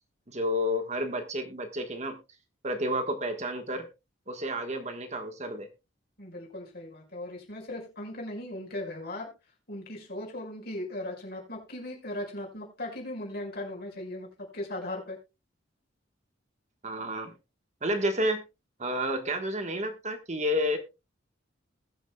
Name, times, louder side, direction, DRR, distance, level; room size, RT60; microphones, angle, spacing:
voice 1, 0.3-2.2 2.6-3.9 4.3-5.7 16.8-17.3 17.8-18.4 18.8-20.8, equal, 35° right, 6 dB, 1.4 m, -30 dB
voice 2, 6.2-9.3 9.7-15.2, left 1 dB, 55° left, -1 dB, 5.2 m, -38 dB
20.5 x 7.2 x 2.3 m, 0.26 s
head